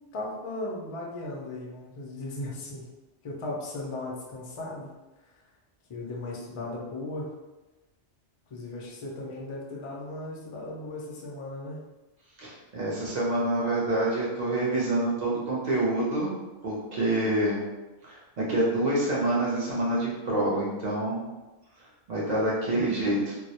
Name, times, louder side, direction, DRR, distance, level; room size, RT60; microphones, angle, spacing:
voice 1, 0.1-2.9 3.2-4.9 5.9-7.3 8.5-11.8 22.7-23.4, left 2 dB, 55° left, -3 dB, 0.3 m, -37 dB
voice 2, 12.4-16.3 16.6-17.6 18.0-21.2 22.1-23.2, right 1 dB, 50° right, -6 dB, 0.5 m, -27 dB
2.2 x 2.0 x 2.7 m, 1.1 s
omnidirectional pair, 1.2 m